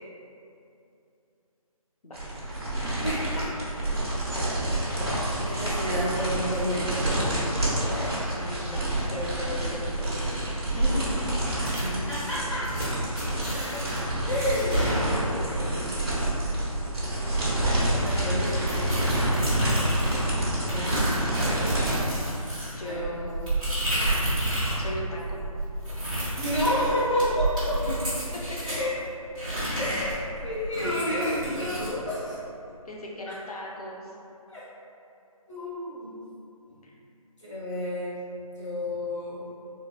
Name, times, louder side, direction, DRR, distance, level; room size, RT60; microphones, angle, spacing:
sound 1, 2.1-22.0, right 1 dB, 45° right, 1.0 m, -28 dB
voice 1, 3.0-3.7 5.4-7.1 11.6-12.7 13.2-14.8 15.2-16.0 18.0-19.0 20.7-21.2 22.8-23.2 26.4-27.8 28.6-29.0 29.8-32.4 33.3-33.4 34.5-34.7 35.5-36.2 36.7-36.8 37.4-38.2 38.6-39.4, left 1 dB, 55° left, -9 dB, 1.2 m, -31 dB
voice 2, 8.3-8.8 9.1-11.3 19.8-19.9 22.8-23.5 24.8-25.4 27.9-28.0 28.3-28.6 32.8-34.2 36.8-36.9, left 1 dB, 80° left, -3 dB, 0.7 m, -37 dB
sound 2, 11.6-11.8 12.1-12.3 12.6-12.8 13.2-14.0 14.4-15.7, equal, 25° left, 1.2 m, -31 dB
sound 3, 18.7-20.3 20.7-24.8 25.1-28.8 29.3-31.9, right 1 dB, 15° right, 0.7 m, -30 dB
3.7 x 2.6 x 2.3 m, 2.7 s
figure-of-eight pair, 160°, 19 cm